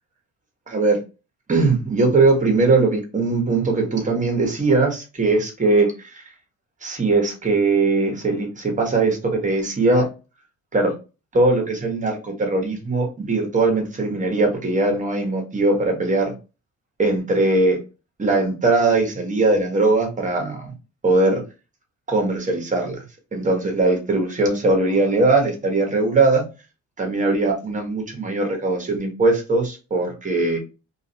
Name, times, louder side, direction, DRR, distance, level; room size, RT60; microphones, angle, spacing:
voice 1, 0.7-1.0 1.5-6.2 6.8-10.1 10.7-10.9 11.3-16.3 17.0-17.8 18.2-20.7 21.0-21.4 22.1-23.0 23.3-26.4 27.0-30.6, right 3 dB, 25° right, 3 dB, 1.0 m, -20 dB
2.4 x 2.3 x 2.7 m, 0.30 s
cardioid pair, 100°, 31 cm